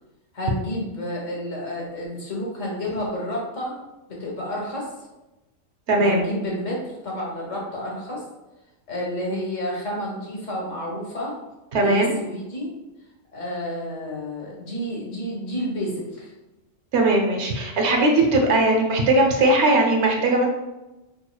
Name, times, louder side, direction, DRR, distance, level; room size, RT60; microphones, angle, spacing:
voice 1, 0.3-3.8 4.1-4.9 6.0-8.2 8.9-11.4 11.7-12.7 13.3-16.3, equal, 80° left, -3 dB, 1.6 m, -30 dB
voice 2, 5.9-6.2 11.7-12.1 16.9-20.5, right 2 dB, 65° right, 1 dB, 1.0 m, -19 dB
5.4 x 3.1 x 2.2 m, 1.0 s
omnidirectional pair, 1.3 m